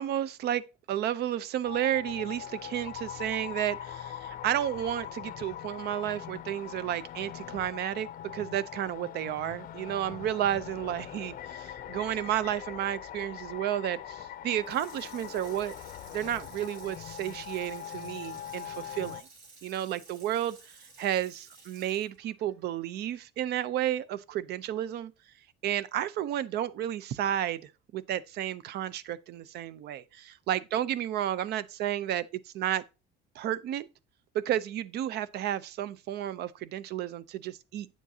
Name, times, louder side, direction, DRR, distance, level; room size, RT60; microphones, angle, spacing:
voice 1, 0.0-15.8 16.1-19.3 19.6-20.7 21.0-25.1 25.6-32.8 33.4-33.9 34.3-37.9, right 11 dB, 55° right, 0.6 m, -32 dB
sound 1, 1.6-19.2, left 10 dB, 40° left, 0.6 m, -42 dB
Water tap faucet / Sink (filling or washing), 14.5-23.7 24.1-24.2, right 3 dB, 70° right, 4.0 m, -54 dB
9.1 x 7.3 x 2.7 m
cardioid pair, 130°, 21 cm